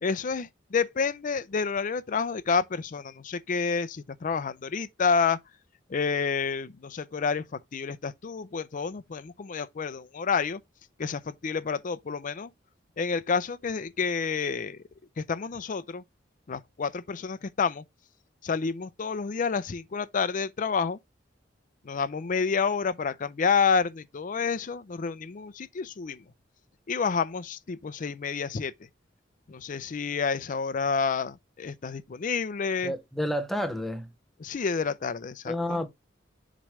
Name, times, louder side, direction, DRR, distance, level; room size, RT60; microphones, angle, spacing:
voice 1, 0.0-5.4 5.9-7.4 7.7-10.6 11.0-12.5 13.0-14.8 15.2-16.0 16.5-17.8 18.4-21.0 21.8-26.2 26.9-28.7 29.5-32.9 34.4-35.8, left 5 dB, 45° left, 0.5 m, -29 dB
voice 2, 32.8-34.1 35.5-35.9, left 1 dB, ahead, 0.7 m, -30 dB
7.5 x 3.1 x 4.7 m
head